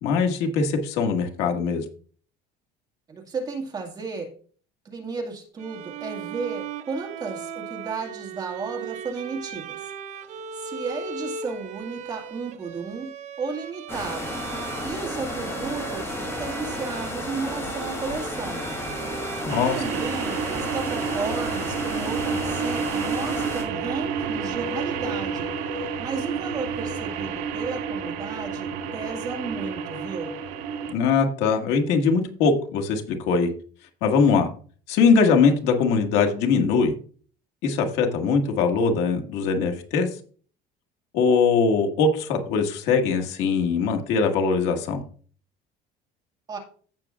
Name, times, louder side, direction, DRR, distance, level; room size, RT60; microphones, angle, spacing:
voice 1, 0.0-1.8 19.5-19.8 30.9-33.5 34.0-34.5 34.9-36.9 37.6-40.1 41.1-45.0, left 5 dB, 75° left, 4 dB, 1.9 m, -21 dB
voice 2, 3.1-4.3 4.8-9.9 10.2-14.4 14.8-18.7 19.6-25.5 25.8-30.4 46.5-46.6, right 4 dB, 20° right, 1 dB, 2.0 m, -34 dB
Bowed string instrument, 5.6-23.4, right 6 dB, 40° right, 0.8 m, -39 dB
sound 1, 13.9-23.6, left 1 dB, 15° left, 4.7 m, -32 dB
sound 2, 19.5-30.9, right 6 dB, 75° right, 2.1 m, -30 dB
15.5 x 6.8 x 2.5 m, 0.43 s
cardioid pair, 170°, 18 cm